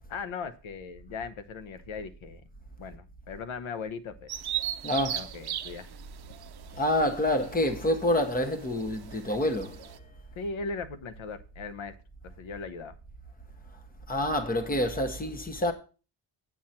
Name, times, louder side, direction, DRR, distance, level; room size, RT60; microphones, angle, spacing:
voice 1, 0.1-2.4 2.8-4.3 5.1-5.9 10.4-11.9 12.2-12.9, left 4 dB, 90° left, 1.1 m, -38 dB
Bird vocalization bird call bird song, 4.3-10.0, right 11 dB, 55° right, 0.7 m, -38 dB
voice 2, 4.8-5.3 6.8-9.8 14.1-15.7, left 1 dB, 20° left, 1.2 m, -27 dB
9.2 x 7.9 x 4.3 m
wide cardioid pair, 170°, 46 cm